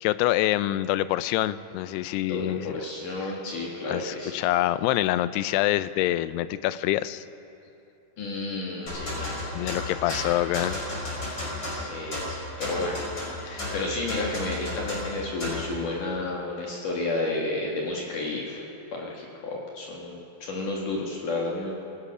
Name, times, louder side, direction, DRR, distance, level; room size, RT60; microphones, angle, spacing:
voice 1, 0.0-2.7 3.9-7.2 9.5-10.8 11.1-11.2 13.5-13.6, left 15 dB, 90° left, 15 dB, 2.7 m, -26 dB
voice 2, 2.2-4.3 8.2-9.7 10.0-10.2 11.7-13.0 13.4-18.6 18.9-21.7, left 2 dB, 60° left, -2 dB, 3.1 m, -32 dB
sound 1, 8.9-15.7, left 1 dB, 25° left, 6.2 m, -33 dB
26.0 x 16.5 x 6.1 m, 2.8 s
omnidirectional pair, 4.6 m